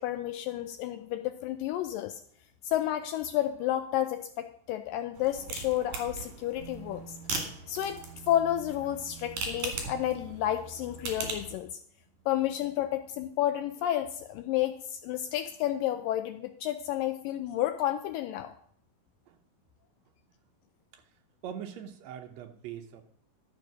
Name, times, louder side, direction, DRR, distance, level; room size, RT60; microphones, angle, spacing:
voice 1, 0.0-2.2 2.6-7.2 7.7-11.7 12.3-18.5, left 12 dB, 80° left, 9 dB, 2.0 m, -31 dB
sound 1, 5.1-11.6, right 4 dB, 55° right, 3.6 m, -39 dB
voice 2, 20.9-23.0, right 9 dB, 90° right, 4 dB, 1.5 m, -43 dB
12.5 x 7.0 x 6.0 m, 0.64 s
omnidirectional pair, 4.3 m